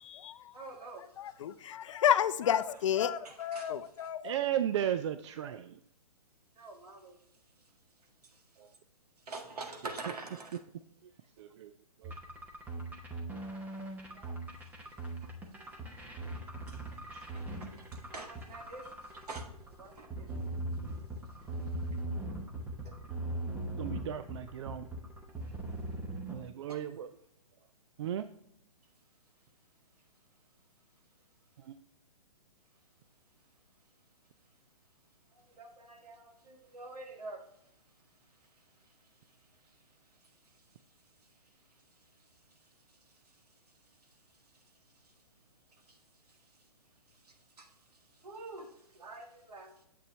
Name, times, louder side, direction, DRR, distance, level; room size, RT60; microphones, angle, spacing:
voice 1, 0.5-1.1 2.7-2.8 3.2-4.1 6.6-7.2 8.2-8.4 9.3-10.6 13.7-14.4 14.8-14.9 15.2-15.4 16.7-16.8 17.1-20.4 20.9-21.0 21.3-22.0 22.9-23.0 25.4-25.5 26.7-26.8 35.3-37.5 38.4-40.8 41.2-43.4 44.0-44.6 44.9-45.1 45.7-46.7 47.1-49.8, right 3 dB, 75° right, 1.8 m, -49 dB
voice 2, 1.2-4.3, left 9 dB, 50° left, 0.5 m, -30 dB
voice 3, 4.2-5.8 8.6-8.7 11.0-11.1 11.4-11.7 12.0-12.1 12.8-12.9 23.8-24.9 26.3-27.1 28.0-28.3 31.6-31.8, right 10 dB, 45° right, 0.4 m, -35 dB
sound 1, 12.0-26.4, right 1 dB, 10° right, 0.9 m, -40 dB
7.7 x 6.6 x 3.1 m
hypercardioid pair, 135°, 20 cm